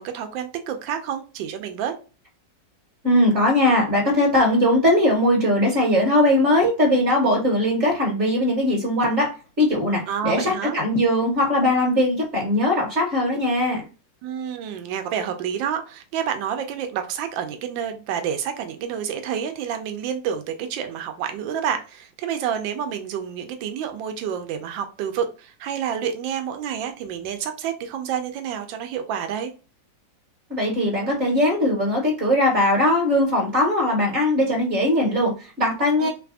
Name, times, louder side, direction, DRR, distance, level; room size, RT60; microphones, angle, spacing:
voice 1, 0.0-1.9 10.1-10.8 14.2-29.5 36.0-36.1, right 8 dB, 90° right, 1.4 m, -29 dB
voice 2, 3.0-9.3 9.6-13.8 30.5-36.1, left 1 dB, 45° right, 1.2 m, -20 dB
3.5 x 3.3 x 2.4 m
omnidirectional pair, 2.0 m